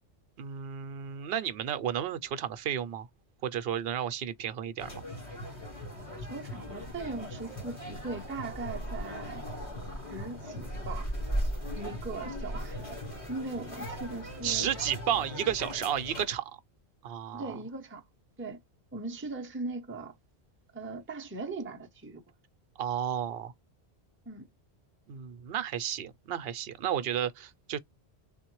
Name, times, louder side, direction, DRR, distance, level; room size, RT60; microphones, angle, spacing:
voice 1, 0.4-3.1 3.4-5.0 14.4-16.5 17.0-17.5 22.8-23.5 25.1-27.8, right 9 dB, 65° right, 0.8 m, -32 dB
sound 1, 4.8-16.3, equal, 30° left, 1.6 m, -38 dB
voice 2, 6.2-9.4 10.1-11.1 11.8-13.0 13.3-14.7 15.1-15.2 17.3-18.0 18.4-18.6 18.9-20.1 20.7-22.2 24.3-24.5, right 3 dB, 15° right, 0.5 m, -39 dB
3.6 x 2.1 x 2.9 m
omnidirectional pair, 1.1 m